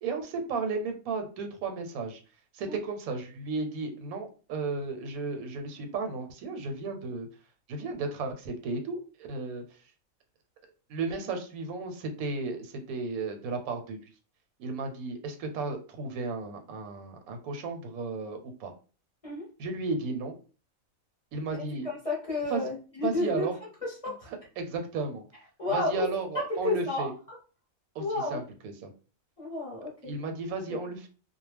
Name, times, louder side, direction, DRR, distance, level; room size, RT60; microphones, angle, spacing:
voice 1, 0.0-2.2 2.5-7.3 7.7-9.6 10.9-14.0 14.6-18.7 19.6-20.4 21.3-21.9 22.5-22.6 23.0-23.6 24.6-25.2 25.7-27.1 28.0-28.1 28.3-28.9 30.0-31.1, right 3 dB, 85° right, 5 dB, 1.1 m, -34 dB
voice 2, 21.5-23.5 23.8-24.3 25.6-26.0 26.5-27.1 28.0-28.4 29.4-30.2 30.7-30.8, left 2 dB, 40° left, -4 dB, 0.5 m, -31 dB
2.3 x 2.0 x 3.2 m, 0.36 s
omnidirectional pair, 1.5 m